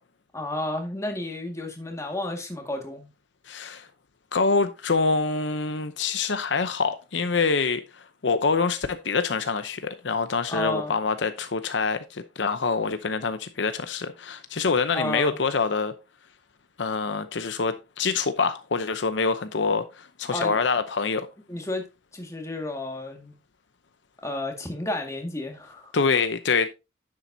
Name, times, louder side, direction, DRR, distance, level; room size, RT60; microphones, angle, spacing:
voice 1, 0.3-3.1 10.5-11.0 14.9-15.4 20.3-20.6 21.5-21.9 22.1-23.3 24.2-26.2, left 1 dB, 15° left, 1.9 m, -32 dB
voice 2, 3.5-3.9 4.3-15.9 16.8-21.3 25.9-26.7, left 4 dB, 70° left, 0.7 m, -25 dB
10.0 x 7.5 x 2.7 m
head